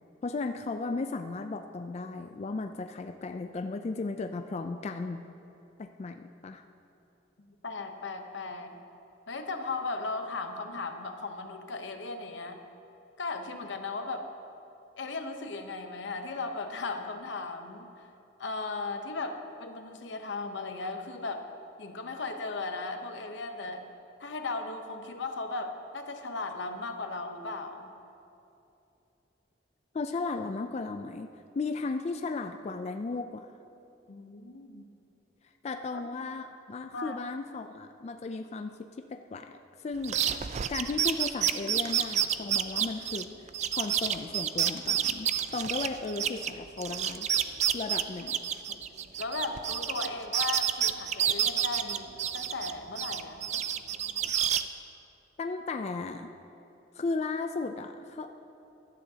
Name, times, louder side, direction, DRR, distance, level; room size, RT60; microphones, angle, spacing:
voice 1, 0.2-5.2 5.8-6.6 29.9-33.5 35.6-39.5 39.8-40.4 40.7-43.3 43.7-47.3 47.7-48.4 55.4-56.3 57.0-58.4, left 3 dB, 35° left, 6 dB, 0.3 m, -35 dB
voice 2, 7.4-8.8 9.3-12.6 13.2-14.3 15.0-18.1 18.4-21.5 21.8-23.9 24.2-27.9 34.1-34.8 35.9-36.3 36.9-37.2 48.7-48.8 49.2-53.4, left 3 dB, 85° left, 6 dB, 0.9 m, -37 dB
sound 1, 40.0-46.5 46.8-50.1 50.3-52.7 53.0-54.6, right 9 dB, 40° right, 0.3 m, -29 dB
16.0 x 11.5 x 2.8 m, 2.8 s
head